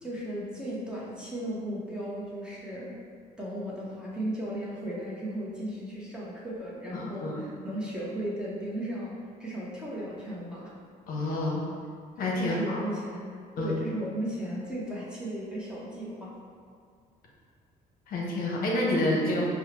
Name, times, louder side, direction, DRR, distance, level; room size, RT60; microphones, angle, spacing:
voice 1, 0.0-3.0 3.4-9.1 9.4-10.7 12.4-16.3, right 1 dB, 5° right, -7 dB, 0.7 m, -35 dB
voice 2, 6.9-7.3 11.1-11.6 12.2-12.8 13.6-13.8 18.1-19.5, left 1 dB, 60° left, -3 dB, 0.7 m, -28 dB
4.5 x 2.0 x 2.8 m, 2.1 s
cardioid pair, 110°, 17 cm